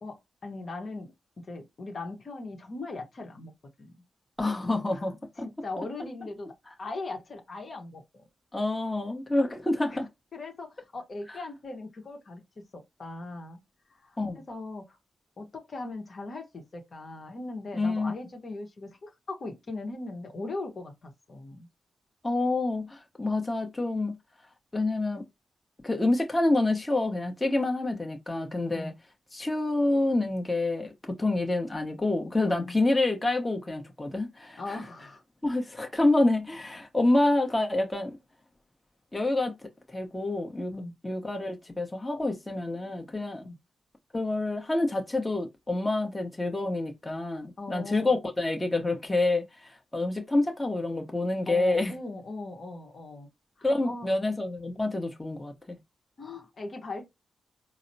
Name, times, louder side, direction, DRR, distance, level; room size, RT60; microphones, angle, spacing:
voice 1, 0.0-3.5 3.8-4.0 4.9-5.0 5.4-8.3 9.9-13.6 14.0-15.0 15.4-21.7 28.7-28.9 32.5-32.8 34.6-35.2 40.7-40.9 43.4-43.6 47.6-48.2 51.5-53.3 53.6-54.1 56.2-57.1, left 2 dB, 55° left, 1.0 m, -39 dB
voice 2, 4.4-5.1 8.5-10.1 11.3-11.4 14.2-14.4 17.7-18.1 22.2-24.2 24.7-25.3 25.8-28.9 29.3-34.8 35.4-38.2 39.1-39.5 39.9-40.7 41.0-43.4 44.1-51.9 53.6-55.8, left 2 dB, 25° left, 1.0 m, -27 dB
4.0 x 2.0 x 2.7 m
supercardioid pair, 40°, 0 cm